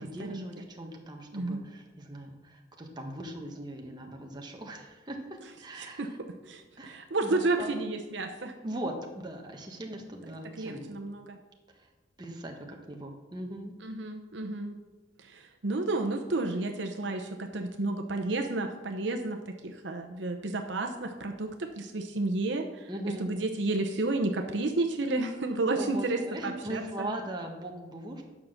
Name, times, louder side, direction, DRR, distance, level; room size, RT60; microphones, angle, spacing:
voice 1, 0.0-6.2 6.8-7.7 8.6-11.0 11.7-11.9 12.2-13.7 22.9-23.3 25.7-28.2, right 1 dB, 20° right, 1 dB, 1.3 m, -40 dB
voice 2, 6.5-8.5 10.6-11.4 13.8-14.8 15.2-22.9 23.2-27.1, right 2 dB, 65° right, 4 dB, 0.8 m, -31 dB
9.4 x 5.9 x 6.6 m, 1.2 s
head